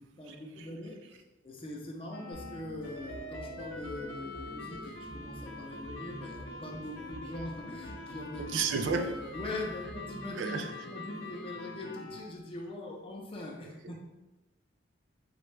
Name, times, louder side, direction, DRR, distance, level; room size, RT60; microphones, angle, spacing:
voice 1, 0.0-8.6 9.3-14.0, left 1 dB, 30° left, 0 dB, 0.5 m, -42 dB
sound 1, 2.1-12.2, left 2 dB, 75° left, 0.6 m, -44 dB
sound 2, 2.3-10.3, equal, 30° right, 1.0 m, -49 dB
voice 2, 8.4-9.1 10.4-10.7, right 5 dB, 70° right, 6 dB, 0.4 m, -31 dB
4.0 x 2.2 x 3.2 m, 1.0 s
head